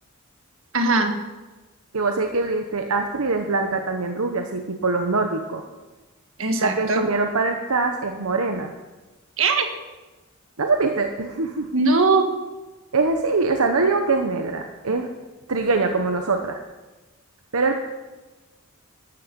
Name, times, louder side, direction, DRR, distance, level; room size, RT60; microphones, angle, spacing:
voice 1, 0.7-1.2 6.4-7.1 9.4-9.7 11.7-12.3, right 3 dB, 65° right, 6 dB, 1.5 m, -20 dB
voice 2, 1.9-5.7 6.6-8.7 10.6-11.7 12.9-15.1 15.5-16.6 17.5-17.8, right 3 dB, 80° right, 5 dB, 1.0 m, -23 dB
13.5 x 12.0 x 5.3 m, 1.2 s
head